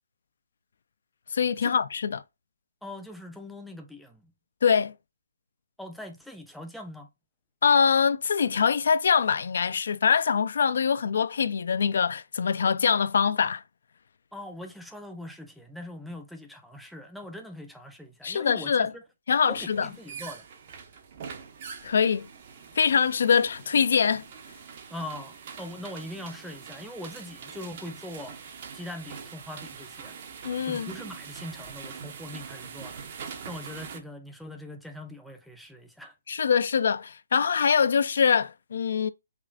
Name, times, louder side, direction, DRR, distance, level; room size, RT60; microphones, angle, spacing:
voice 1, 1.3-2.2 4.6-4.9 7.6-13.6 18.2-18.9 19.3-19.9 21.8-22.3 22.8-24.2 30.4-30.9 36.3-39.1, left 6 dB, 60° left, 0.3 m, -23 dB
voice 2, 2.8-4.3 5.8-7.1 14.3-19.0 19.5-20.5 24.9-28.4 28.7-30.2 30.6-36.2, left 1 dB, ahead, 0.5 m, -41 dB
sound 1, 19.5-34.0, right 6 dB, 40° right, 0.8 m, -43 dB
5.0 x 2.5 x 2.4 m
hypercardioid pair, 155°, 0 cm